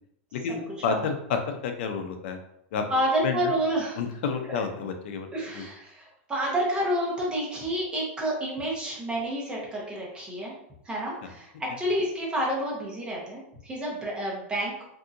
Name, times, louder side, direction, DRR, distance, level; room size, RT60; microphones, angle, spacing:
voice 1, 0.3-2.4 2.7-2.8 3.2-3.5 4.0-5.3 5.5-5.7 11.2-11.3, left 5 dB, 60° left, 6 dB, 0.6 m, -30 dB
voice 2, 2.9-4.0 4.5-4.6 5.3-10.5 10.8-14.9, right 1 dB, 15° right, -4 dB, 1.0 m, -29 dB
3.6 x 2.7 x 2.6 m, 0.76 s
supercardioid pair, 150°, 7 cm